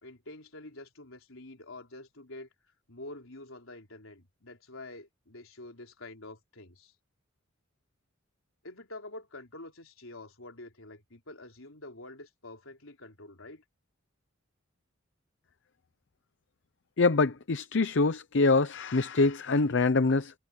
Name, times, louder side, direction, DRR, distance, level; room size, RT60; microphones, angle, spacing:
voice 1, 0.0-2.5 2.9-6.9 8.6-13.6, left 2 dB, 75° left, 3.9 m, -47 dB
voice 2, 17.0-20.3, left 3 dB, 60° left, 0.7 m, -25 dB
head